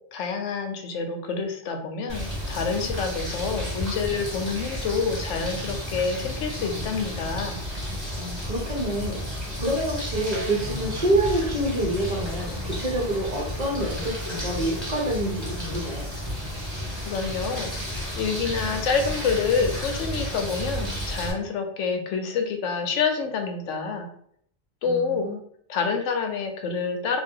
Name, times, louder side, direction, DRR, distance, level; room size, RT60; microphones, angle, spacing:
voice 1, 0.1-7.6 17.0-17.7 18.2-24.1 24.8-25.3 25.7-27.2, left 5 dB, 85° left, 5 dB, 0.9 m, -27 dB
sound 1, 2.1-21.3, equal, ahead, 1.2 m, -32 dB
voice 2, 8.2-9.2 9.6-16.1 24.8-25.4, right 1 dB, 45° right, -3 dB, 0.7 m, -27 dB
Bowed string instrument, 10.1-15.8, right 3 dB, 80° right, 0.9 m, -44 dB
2.5 x 2.2 x 3.4 m, 0.64 s
omnidirectional pair, 1.3 m